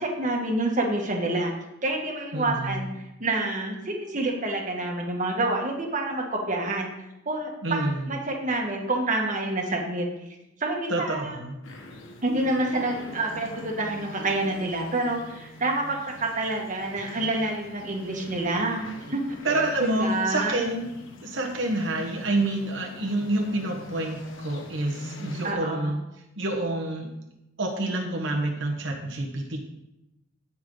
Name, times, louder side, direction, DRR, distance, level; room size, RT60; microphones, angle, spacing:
voice 1, 0.0-1.5 1.8-6.9 7.2-10.1 10.6-11.4 12.2-19.4 19.8-20.6 25.4-25.9, right 2 dB, 40° right, 1 dB, 1.6 m, -28 dB
voice 2, 2.3-2.8 7.6-8.1 10.9-11.6 19.4-20.9 21.2-26.0 26.4-27.1 27.6-29.6, right 2 dB, 70° right, 0 dB, 1.4 m, -28 dB
sound 1, 11.6-25.5, left 2 dB, 75° left, 1.4 m, -43 dB
15.5 x 5.7 x 3.9 m, 0.92 s
head